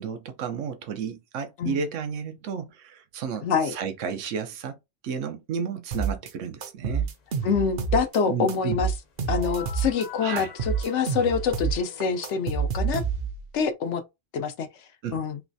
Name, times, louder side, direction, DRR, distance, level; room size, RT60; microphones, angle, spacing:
voice 1, 0.0-4.8 5.0-7.1 8.3-8.8 10.2-10.5 15.0-15.2, right 6 dB, 90° right, 1.0 m, -32 dB
voice 2, 3.4-3.7 7.4-8.9 9.3-13.0 13.5-14.0 14.3-14.7 15.1-15.4, left 6 dB, 75° left, 0.9 m, -26 dB
sound 1, 5.9-6.3 6.6-8.2 8.5-10.1 10.4-13.4, right 6 dB, 60° right, 0.8 m, -28 dB
sound 2, 9.3-12.9, left 7 dB, 40° left, 0.8 m, -44 dB
3.2 x 3.1 x 2.6 m
omnidirectional pair, 1.2 m